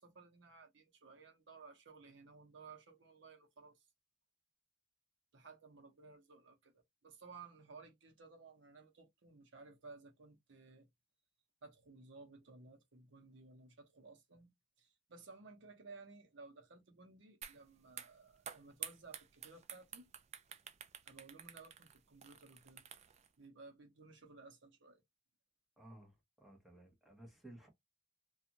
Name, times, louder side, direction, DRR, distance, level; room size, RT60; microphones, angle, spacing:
voice 1, 0.0-3.8 5.3-10.9 11.6-14.5 14.8-20.1 21.1-22.9 23.4-25.0, right 4 dB, 80° right, 0.8 m, -57 dB
sound 1, 17.4-17.6 17.9-23.3, right 9 dB, 35° right, 0.3 m, -50 dB
voice 2, 25.8-27.7, right 1 dB, ahead, 0.9 m, -57 dB
2.5 x 2.4 x 2.8 m
head